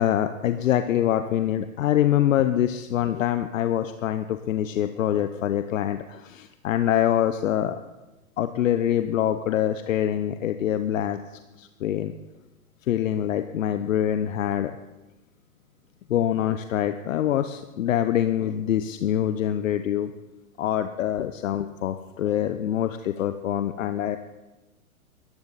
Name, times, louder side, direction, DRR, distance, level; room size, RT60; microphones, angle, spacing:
voice 1, 0.0-7.8 8.4-11.2 11.6-12.1 12.9-14.7 16.1-20.1 20.6-24.2, left 11 dB, 65° left, 10 dB, 0.9 m, -25 dB
22.5 x 14.5 x 4.1 m, 1.1 s
hypercardioid pair, 120°, 42 cm